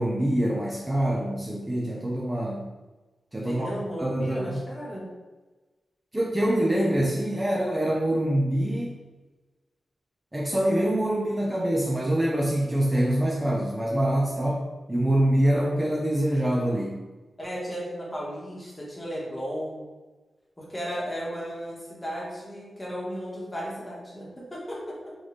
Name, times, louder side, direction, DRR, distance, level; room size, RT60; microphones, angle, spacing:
voice 1, 0.0-2.7 3.3-3.7 4.0-4.6 6.1-9.0 10.3-17.0, right 1 dB, 15° right, -4 dB, 0.6 m, -25 dB
voice 2, 3.4-5.1 17.4-19.9 20.6-25.0, equal, 20° left, -4 dB, 1.4 m, -35 dB
4.0 x 3.4 x 3.2 m, 1.2 s
wide cardioid pair, 100°, 0 cm